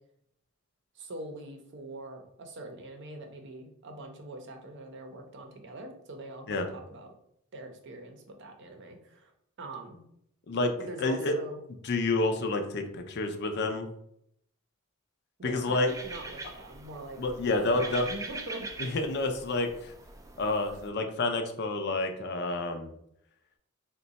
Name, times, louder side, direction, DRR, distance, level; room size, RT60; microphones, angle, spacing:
voice 1, 0.9-7.1 7.5-9.3 9.6-10.0 10.8-11.6 15.4-17.2 17.6-18.7, right 2 dB, 55° right, 4 dB, 0.6 m, -43 dB
voice 2, 11.0-11.3 11.8-13.9 15.4-15.9 17.2-18.1 18.8-19.9 20.4-22.9, left 2 dB, 50° left, 6 dB, 0.5 m, -29 dB
sound 1, 15.9-20.9, right 3 dB, 15° right, 0.3 m, -43 dB
3.7 x 2.2 x 4.0 m, 0.72 s
head